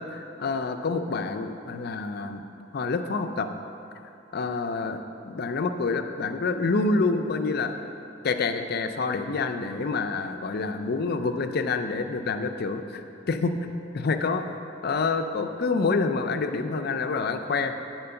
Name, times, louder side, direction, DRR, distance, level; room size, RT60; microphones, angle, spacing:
voice 1, 0.0-2.4 2.7-3.5 4.3-7.9 8.2-13.7 13.9-14.5 14.8-17.7, left 4 dB, 55° left, 7 dB, 0.5 m, -27 dB
8.6 x 4.5 x 6.8 m, 2.8 s
head